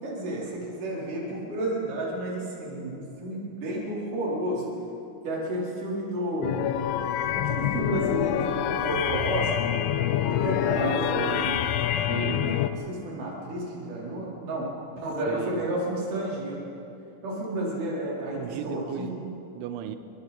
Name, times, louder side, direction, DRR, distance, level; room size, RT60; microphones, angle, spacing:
voice 1, 0.0-4.7 5.2-6.6 7.3-9.5 10.3-11.6 12.2-12.6 12.9-14.7 15.0-16.7 17.2-19.1, right 1 dB, 45° right, -5 dB, 5.4 m, -31 dB
sound 1, 6.4-12.7, left 10 dB, 80° left, 3.0 m, -26 dB
voice 2, 10.7-11.5 12.1-12.5 15.3-15.6 18.3-20.0, right 10 dB, 85° right, 9 dB, 3.2 m, -36 dB
26.5 x 23.5 x 4.3 m, 2.8 s
omnidirectional pair, 5.7 m